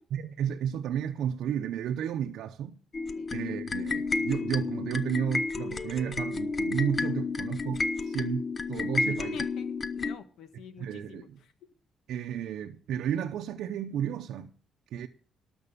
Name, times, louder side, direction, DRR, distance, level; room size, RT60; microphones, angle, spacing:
voice 1, 0.1-2.8 3.3-9.4 10.8-11.4 12.1-14.5 14.9-15.1, right 9 dB, 80° right, 0.7 m, -32 dB
sound 1, 2.9-10.2, left 3 dB, 35° left, 0.8 m, -31 dB
voice 2, 9.0-11.3, left 8 dB, 75° left, 1.3 m, -46 dB
12.5 x 6.1 x 8.3 m
cardioid pair, 90°, 0 cm